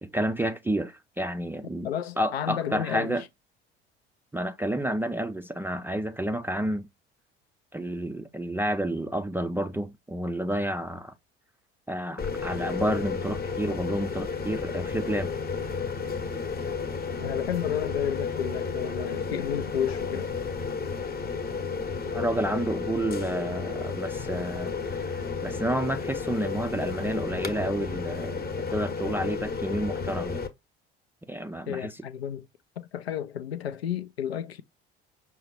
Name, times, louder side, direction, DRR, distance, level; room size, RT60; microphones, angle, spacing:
voice 1, 0.0-1.9 2.2-3.2 4.3-6.9 7.7-11.1 11.9-15.3 22.1-30.4 31.3-32.0, right 1 dB, 5° right, 0.4 m, -30 dB
voice 2, 1.8-3.2 17.2-20.3 31.7-32.5 32.8-34.6, left 9 dB, 85° left, 0.5 m, -32 dB
sound 1, 12.2-30.5, left 5 dB, 30° left, 0.9 m, -32 dB
5.6 x 2.2 x 4.1 m
figure-of-eight pair, 60°, 30 cm